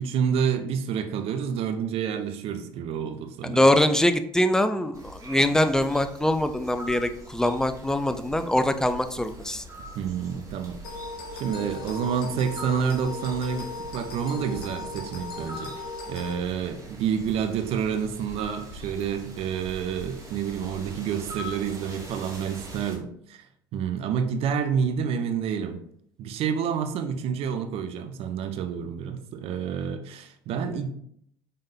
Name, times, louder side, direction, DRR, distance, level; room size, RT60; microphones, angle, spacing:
voice 1, 0.0-3.6 9.9-10.8 11.3-23.5 23.7-25.8 26.2-30.9, right 7 dB, 55° right, 7 dB, 0.6 m, -29 dB
voice 2, 3.4-9.6, left 1 dB, 5° left, 9 dB, 0.4 m, -23 dB
sound 1, 4.9-23.0, right 1 dB, 25° right, 1.7 m, -43 dB
sound 2, 10.8-16.3, left 3 dB, 80° left, 0.9 m, -38 dB
5.3 x 3.6 x 2.7 m, 0.67 s
hypercardioid pair, 65°, 12 cm